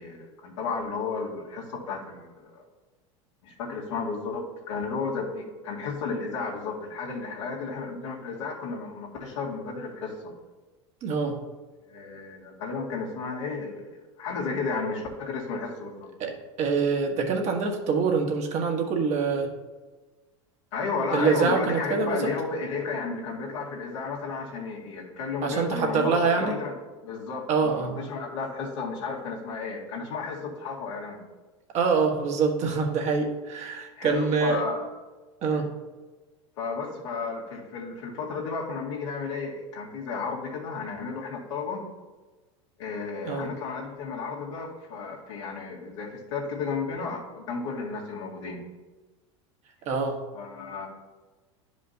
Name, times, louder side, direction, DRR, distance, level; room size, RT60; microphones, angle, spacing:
voice 1, 0.0-2.6 3.4-10.3 11.9-16.1 20.7-26.7 27.0-31.2 34.0-34.9 35.5-35.7 36.6-41.9 42.8-48.6 50.3-50.9, left 4 dB, 80° left, -3 dB, 1.9 m, -33 dB
voice 2, 11.0-11.4 16.2-16.3 16.6-19.5 21.1-22.3 25.4-26.5 27.5-27.9 31.7-34.6 35.4-35.7 43.2-43.5 49.9-50.2, right 5 dB, 45° right, 2 dB, 1.3 m, -25 dB
11.0 x 5.0 x 2.7 m, 1.3 s
hypercardioid pair, 95°, 15 cm